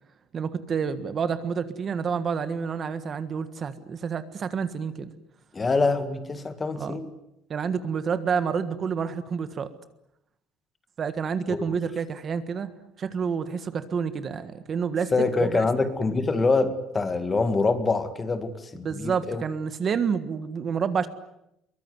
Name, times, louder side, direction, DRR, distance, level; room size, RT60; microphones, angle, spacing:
voice 1, 0.3-5.1 6.8-7.0 7.5-9.7 11.0-12.7 13.0-15.1 15.4-15.7 18.8-21.1, right 6 dB, 35° right, 11 dB, 1.5 m, -29 dB
voice 2, 5.5-7.1 11.5-11.6 15.1-19.4, left 3 dB, 20° left, 10 dB, 2.0 m, -25 dB
23.0 x 23.0 x 9.6 m, 0.82 s
cardioid pair, 155°, 0 cm